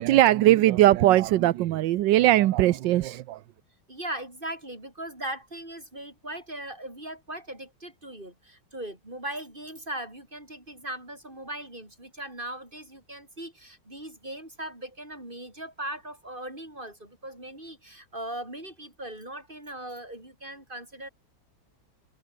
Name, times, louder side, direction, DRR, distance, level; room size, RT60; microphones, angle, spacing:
voice 1, 0.0-3.4, right 14 dB, 80° right, 1.4 m, -20 dB
voice 2, 3.9-21.1, right 1 dB, 25° right, 8.1 m, -39 dB
open air
omnidirectional pair, 2.0 m